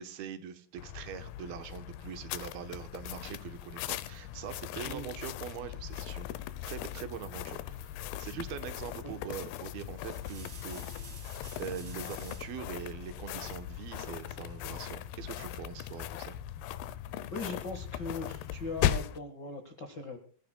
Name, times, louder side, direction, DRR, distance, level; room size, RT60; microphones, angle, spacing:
voice 1, 0.0-6.3 6.6-7.9 8.2-11.3 11.6-16.4, right 8 dB, 75° right, 9 dB, 2.8 m, -43 dB
sound 1, 0.8-19.2, left 11 dB, 85° left, 2.8 m, -38 dB
sound 2, 8.9-9.2 9.9-12.6 14.0-14.7, right 3 dB, 30° right, 3.2 m, -52 dB
voice 2, 17.3-20.2, left 3 dB, 55° left, 5 dB, 1.2 m, -39 dB
25.5 x 15.0 x 2.3 m, 0.42 s
omnidirectional pair, 4.6 m